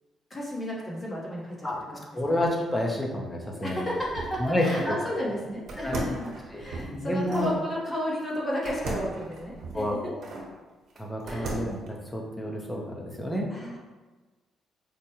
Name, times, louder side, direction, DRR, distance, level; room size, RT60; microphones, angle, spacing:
voice 1, 0.3-2.0 3.6-10.1 11.2-11.6 13.5-13.8, equal, 30° left, -4 dB, 1.2 m, -33 dB
voice 2, 2.1-3.9 4.4-5.0 5.8-6.0 6.5-7.5 9.7-10.2 11.0-13.5, left 1 dB, 10° left, -1 dB, 0.8 m, -29 dB
sound 1, 3.8-5.0 5.7-7.6 8.7-10.5 11.0-11.9, right 2 dB, 65° right, 1.1 m, -37 dB
5.0 x 2.2 x 3.0 m, 1.3 s
cardioid pair, 90°, 0 cm